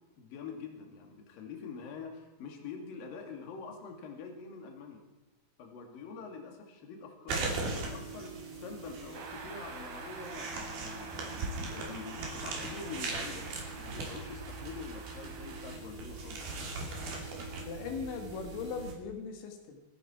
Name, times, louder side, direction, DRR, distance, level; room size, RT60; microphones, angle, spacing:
voice 1, 0.2-5.0 5.6-16.5, left 5 dB, 60° left, 3 dB, 3.7 m, -45 dB
sound 1, 7.3-18.9, right 3 dB, 60° right, 4.6 m, -39 dB
sound 2, 9.1-15.6, right 5 dB, 85° right, 4.7 m, -47 dB
voice 2, 17.6-19.8, left 5 dB, 85° left, 4 dB, 4.0 m, -39 dB
27.5 x 10.5 x 4.4 m, 1.1 s
omnidirectional pair, 5.1 m